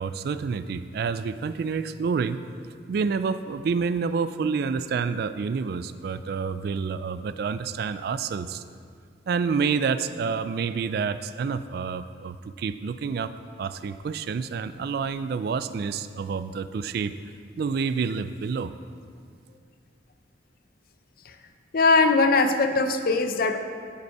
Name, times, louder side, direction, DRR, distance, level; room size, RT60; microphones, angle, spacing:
voice 1, 0.0-2.4 2.9-8.6 9.3-17.1 17.6-18.7, right 5 dB, 55° right, 13 dB, 0.3 m, -28 dB
voice 2, 21.7-23.6, left 3 dB, 50° left, 7 dB, 0.6 m, -21 dB
11.0 x 5.3 x 4.7 m, 2.1 s
head